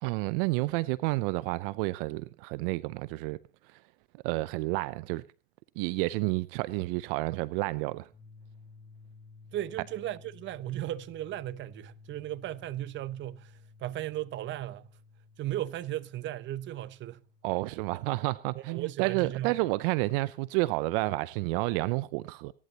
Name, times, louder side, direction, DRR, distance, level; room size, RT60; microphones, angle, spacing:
voice 1, 0.0-3.4 4.2-5.2 5.8-8.1 17.4-22.5, right 21 dB, 65° right, 0.6 m, -30 dB
sound 1, 8.1-20.0, left 4 dB, 10° left, 1.9 m, -56 dB
voice 2, 9.5-13.5 13.8-14.9 15.4-17.2 18.5-19.6, right 13 dB, 40° right, 0.9 m, -36 dB
26.5 x 11.0 x 2.9 m
supercardioid pair, 105°, 29 cm